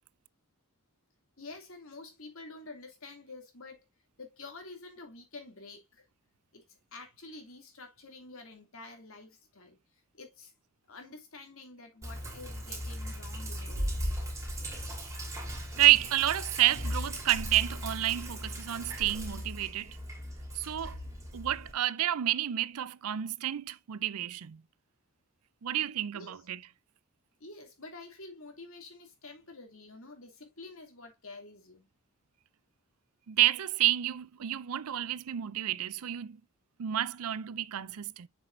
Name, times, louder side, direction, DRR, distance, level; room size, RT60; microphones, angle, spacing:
voice 1, 1.4-3.8 4.2-6.0 6.5-6.6 6.9-9.8 10.1-10.5 10.9-14.1 26.1-26.3 27.4-31.9, left 3 dB, 65° left, 2.6 m, -48 dB
Sink (filling or washing), 12.0-21.7, equal, 15° right, 2.8 m, -37 dB
voice 2, 15.8-20.0 20.5-21.0 21.3-24.6 25.6-26.6 33.3-36.4 36.8-38.3, right 13 dB, 80° right, 0.5 m, -29 dB
7.6 x 6.1 x 2.6 m
head